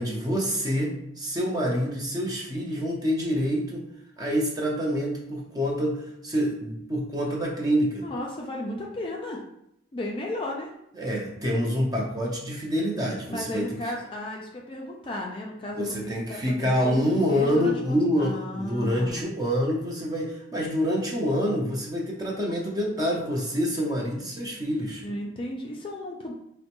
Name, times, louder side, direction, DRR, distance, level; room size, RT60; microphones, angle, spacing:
voice 1, 0.0-3.8 4.2-8.0 11.0-13.9 15.7-25.0, equal, 20° right, -2 dB, 0.6 m, -27 dB
voice 2, 8.0-9.4 9.9-10.7 13.3-19.3 25.0-26.3, left 1 dB, 30° left, -1 dB, 0.4 m, -34 dB
4.2 x 2.1 x 2.9 m, 0.77 s
head